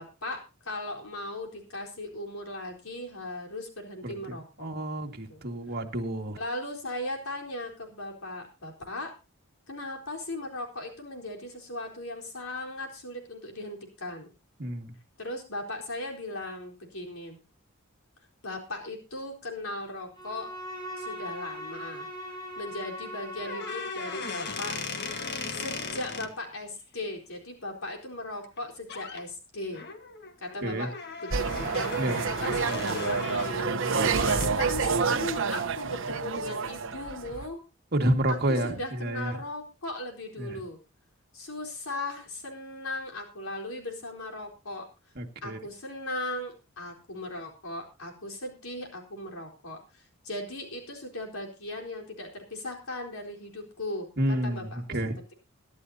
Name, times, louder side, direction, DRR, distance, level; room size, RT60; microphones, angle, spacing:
voice 1, 0.0-4.7 5.3-5.4 6.4-9.1 9.7-14.3 15.2-17.4 18.4-20.5 21.0-22.1 22.6-24.8 25.5-29.8 30.4-31.9 32.2-37.6 38.3-40.8 41.3-44.9 45.4-55.0, left 1 dB, 80° left, 1 dB, 4.2 m, -38 dB
voice 2, 4.6-6.4 14.6-14.9 30.6-30.9 32.0-32.2 37.9-39.3 40.4-40.6 45.2-45.6 54.2-55.1, right 1 dB, 50° right, 3 dB, 2.0 m, -29 dB
Bowed string instrument, 20.1-24.9, equal, 20° left, 6.9 m, -40 dB
sound 1, 23.4-26.3 28.4-28.6 28.9-29.2 29.7-34.6, left 4 dB, 55° left, 1.6 m, -37 dB
sound 2, 31.3-37.5, right 5 dB, 65° right, 1.0 m, -28 dB
23.5 x 11.0 x 2.8 m, 0.29 s
head